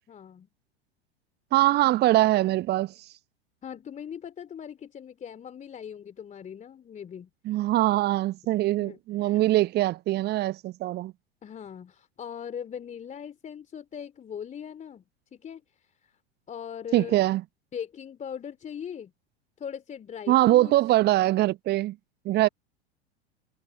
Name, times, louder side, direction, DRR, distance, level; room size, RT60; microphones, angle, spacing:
voice 1, 0.1-0.5 3.6-7.3 8.8-9.4 11.4-15.0 15.3-16.2 16.5-17.2 17.7-19.1 19.6-20.7, left 8 dB, 20° left, 3.2 m, -40 dB
voice 2, 1.5-2.9 7.4-11.1 16.9-17.4 20.3-22.0 22.2-22.5, right 16 dB, 30° right, 1.1 m, -23 dB
figure-of-eight pair, 85°, 32 cm